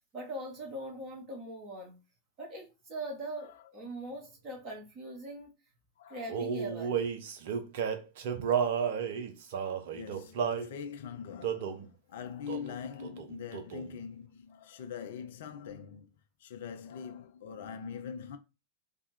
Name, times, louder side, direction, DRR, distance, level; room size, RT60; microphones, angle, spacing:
voice 1, 0.1-2.0 2.4-5.5 6.1-7.0, right 1 dB, 35° right, 1.6 m, -41 dB
voice 2, 3.4-3.7 6.0-6.2 8.4-8.6 9.9-16.1 16.4-18.4, left 7 dB, 55° left, 0.5 m, -43 dB
Male singing, 6.3-10.7 11.4-11.8 12.5-12.8 13.0-14.0, right 7 dB, 55° right, 0.6 m, -32 dB
3.4 x 2.4 x 4.1 m
figure-of-eight pair, 90°, 0 cm